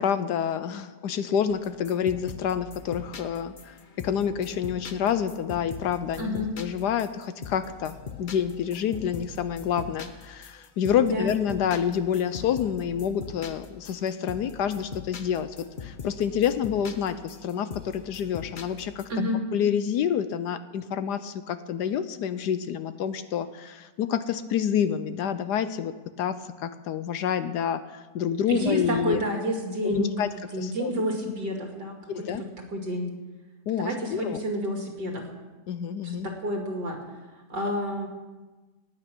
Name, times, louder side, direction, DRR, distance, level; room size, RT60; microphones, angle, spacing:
voice 1, 0.0-3.7 4.0-6.3 6.6-15.6 15.8-19.0 19.5-25.9 26.2-29.2 29.8-30.3 30.6-30.9 32.1-32.4 33.7-34.4 35.7-36.3, left 8 dB, 70° left, 12 dB, 1.2 m, -28 dB
sound 1, 1.5-19.0, left 5 dB, 40° left, 0.7 m, -42 dB
voice 2, 6.2-6.5 11.0-11.3 19.1-19.4 28.5-30.1 30.5-33.1 33.8-35.3 36.0-37.0 37.5-38.1, equal, 65° right, 1 dB, 3.0 m, -29 dB
18.5 x 9.1 x 6.1 m, 1.2 s
omnidirectional pair, 1.9 m